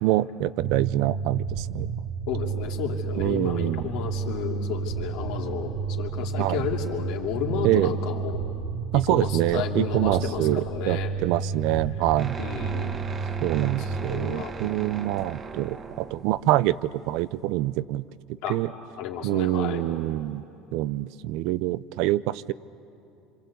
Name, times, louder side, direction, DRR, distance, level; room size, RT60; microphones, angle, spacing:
voice 1, 0.0-1.9 3.2-3.9 6.4-6.7 7.6-7.9 8.9-12.4 13.4-18.0 18.5-18.7 19.2-20.4 20.7-22.5, right 15 dB, 70° right, 18 dB, 0.5 m, -25 dB
sound 1, 0.6-14.3, right 5 dB, 85° right, 1.7 m, -31 dB
voice 2, 2.3-8.4 8.9-11.1 12.4-13.0 13.9-14.5 18.4-18.6 19.0-19.8, left 7 dB, 70° left, 1 dB, 2.8 m, -32 dB
sound 2, 12.2-17.6, right 5 dB, 30° right, 1.2 m, -39 dB
26.5 x 26.0 x 8.4 m, 2.7 s
supercardioid pair, 115°, 0 cm